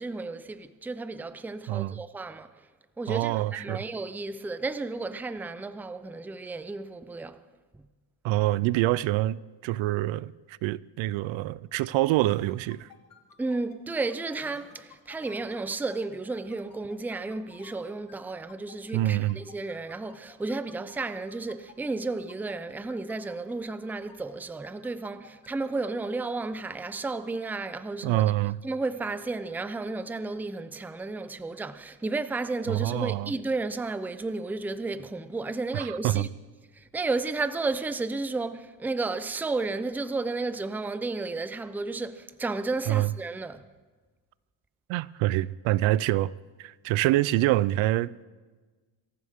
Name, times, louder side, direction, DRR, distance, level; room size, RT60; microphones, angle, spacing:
voice 1, 0.0-2.7 3.0-7.4 7.7-7.8 13.4-28.2 28.6-36.3 36.7-43.7, right 3 dB, 5° right, 0.5 m, -33 dB
voice 2, 3.1-3.8 8.2-12.9 18.9-19.4 28.0-28.6 32.7-33.3 35.7-36.3 42.9-43.1 44.9-46.3 46.6-48.1, right 16 dB, 75° right, 0.6 m, -26 dB
sound 1, 12.3-24.3 24.6-27.7, left 7 dB, 45° left, 2.6 m, -54 dB
25.0 x 14.5 x 3.6 m
cardioid pair, 120°, 47 cm